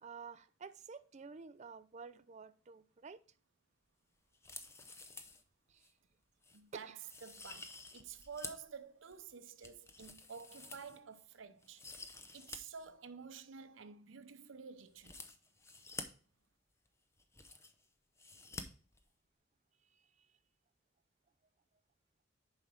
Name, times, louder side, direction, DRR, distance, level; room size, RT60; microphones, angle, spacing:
voice 1, 0.0-3.2 5.7-5.9 6.7-6.9 19.9-20.3, right 5 dB, 35° right, 0.5 m, -51 dB
sound 1, 4.3-5.4 5.8-5.9 6.4-6.6 7.0-8.7 9.1-11.2 11.6-12.6 12.9-13.0 14.9-16.0 16.9-17.0 17.1-17.9 18.2-18.6 18.9-19.0, left 3 dB, 15° left, 0.6 m, -50 dB
voice 2, 6.5-11.8 12.3-15.2, right 6 dB, 80° right, 0.7 m, -51 dB
7.1 x 4.9 x 4.3 m
head